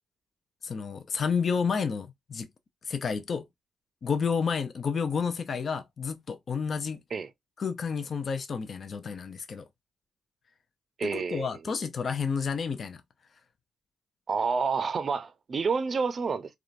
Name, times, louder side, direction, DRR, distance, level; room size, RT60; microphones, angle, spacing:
voice 1, 0.6-2.5 2.9-3.5 4.0-7.0 7.6-9.7 11.0-13.0, left 6 dB, 55° left, 0.4 m, -30 dB
voice 2, 11.0-11.5 14.3-16.6, right 5 dB, 50° right, 0.5 m, -29 dB
3.6 x 2.2 x 2.5 m
hypercardioid pair, 45°, 0 cm